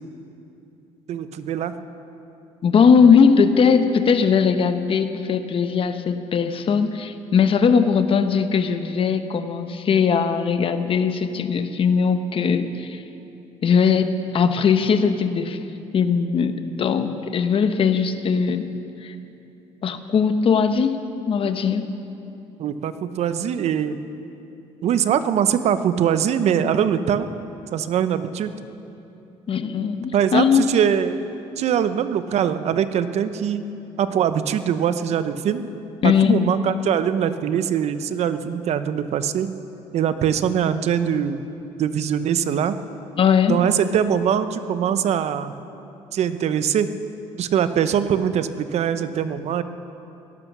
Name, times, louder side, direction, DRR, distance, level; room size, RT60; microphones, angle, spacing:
voice 1, 1.1-1.7 22.6-24.0 24.8-27.3 27.7-28.5 30.1-31.2 31.6-33.6 34.0-35.7 36.0-39.5 39.9-41.4 41.8-42.8 43.5-45.5 46.1-46.9 47.4-49.6, right 8 dB, 60° right, 12 dB, 0.8 m, -22 dB
voice 2, 2.6-13.0 13.6-15.6 15.9-18.7 19.0-19.1 19.8-21.9 29.5-30.7 36.0-36.3 43.2-43.6, left 6 dB, 45° left, 9 dB, 1.0 m, -19 dB
18.0 x 11.5 x 6.1 m, 2.8 s
supercardioid pair, 85°, 12 cm